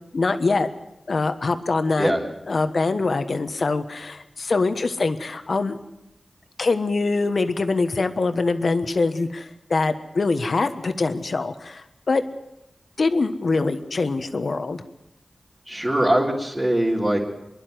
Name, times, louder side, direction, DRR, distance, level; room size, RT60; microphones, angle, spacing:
voice 1, 0.1-0.7 1.1-2.1 2.5-5.8 6.6-12.2 13.0-14.8, left 3 dB, 70° left, 9 dB, 1.3 m, -23 dB
voice 2, 15.7-17.2, right 1 dB, 30° right, -7 dB, 3.8 m, -21 dB
26.0 x 11.0 x 9.5 m, 0.90 s
wide cardioid pair, 55°, 0 cm